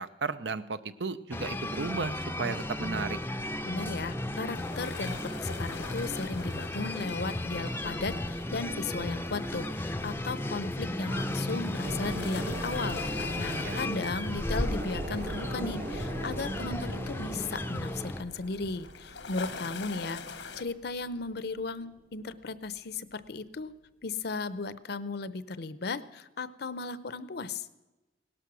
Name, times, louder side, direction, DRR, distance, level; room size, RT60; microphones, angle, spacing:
voice 1, 0.0-3.2 13.6-13.8, right 4 dB, 75° right, 13 dB, 0.7 m, -34 dB
sound 1, 1.3-18.2, left 1 dB, 15° left, 0.5 m, -34 dB
voice 2, 3.6-23.7 24.0-27.7, left 3 dB, 65° left, 15 dB, 0.7 m, -36 dB
sound 2, 4.5-20.6, left 4 dB, 90° left, 1.2 m, -46 dB
sound 3, 11.8-21.8 22.2-22.3, right 2 dB, 60° right, 1.6 m, -41 dB
17.5 x 12.0 x 6.2 m, 1.1 s
head